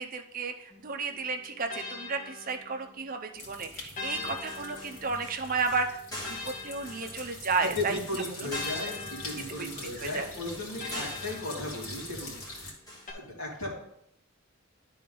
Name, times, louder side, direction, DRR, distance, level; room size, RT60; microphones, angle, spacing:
voice 1, 0.0-8.0 8.4-8.5 9.6-9.7 10.0-10.3 10.9-11.1, right 4 dB, 40° right, 6 dB, 0.5 m, -33 dB
sound 1, 0.7-3.2 4.0-7.7 8.5-12.3 13.1-13.2, left 4 dB, 35° left, 1.3 m, -43 dB
sound 2, 3.3-12.7, left 2 dB, 85° left, 2.1 m, -44 dB
sound 3, 4.2-13.1, left 1 dB, 15° left, 2.4 m, -45 dB
voice 2, 7.6-12.8 13.1-13.7, left 2 dB, 70° left, -3 dB, 2.3 m, -36 dB
11.0 x 3.8 x 3.8 m, 0.75 s
head